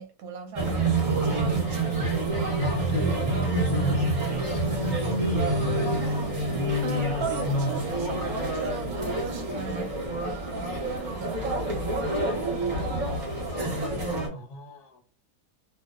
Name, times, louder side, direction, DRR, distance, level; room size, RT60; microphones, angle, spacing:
voice 1, 0.0-1.8 6.8-13.2, right 6 dB, 70° right, 1.0 m, -38 dB
sound 1, 0.6-14.3, right 2 dB, 40° right, 0.7 m, -27 dB
voice 2, 2.6-6.0 14.3-15.0, left 1 dB, 80° left, 1.2 m, -35 dB
2.7 x 2.1 x 2.3 m
omnidirectional pair, 1.7 m